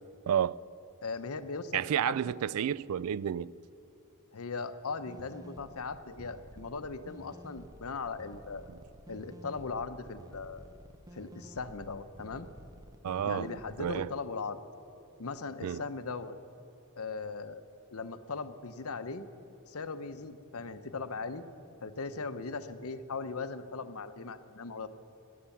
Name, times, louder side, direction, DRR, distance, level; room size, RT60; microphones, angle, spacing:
voice 1, 0.3-0.6 1.7-3.5 13.0-13.5 13.8-14.1 15.6-15.8, right 9 dB, 80° right, 0.3 m, -30 dB
voice 2, 1.0-2.3 4.3-8.7 9.1-10.6 11.1-12.5 13.2-14.6 15.2-16.4 17.0-17.6 17.9-19.3 19.7-21.4 21.8-24.9, left 4 dB, 75° left, 0.8 m, -39 dB
sound 1, 5.0-13.9, right 1 dB, 15° right, 0.5 m, -52 dB
17.0 x 11.0 x 7.2 m
head